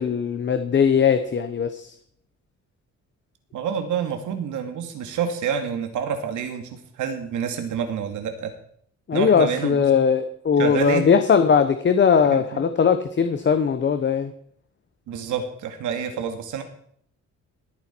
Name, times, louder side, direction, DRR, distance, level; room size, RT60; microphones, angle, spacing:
voice 1, 0.0-1.9 9.1-14.3, left 6 dB, 40° left, 9 dB, 1.0 m, -19 dB
voice 2, 3.5-8.5 9.1-9.9 10.6-11.1 12.3-12.6 15.1-16.6, right 7 dB, 90° right, 6 dB, 2.4 m, -28 dB
18.5 x 9.4 x 4.6 m, 0.63 s
cardioid pair, 110°, 29 cm